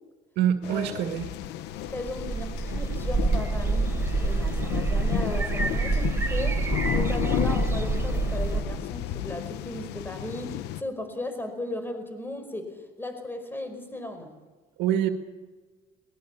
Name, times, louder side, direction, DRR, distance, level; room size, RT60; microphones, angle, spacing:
voice 1, 0.4-1.3 14.8-15.1, right 10 dB, 90° right, 6 dB, 2.0 m, -25 dB
sound 1, 0.6-10.8, left 13 dB, 90° left, 1.0 m, -33 dB
voice 2, 1.9-6.6 6.9-14.3, left 1 dB, 10° left, 7 dB, 4.8 m, -36 dB
sound 2, 1.9-8.6, right 4 dB, 15° right, 4.0 m, -27 dB
22.0 x 20.5 x 7.2 m, 1.3 s
cardioid pair, 110°, 17 cm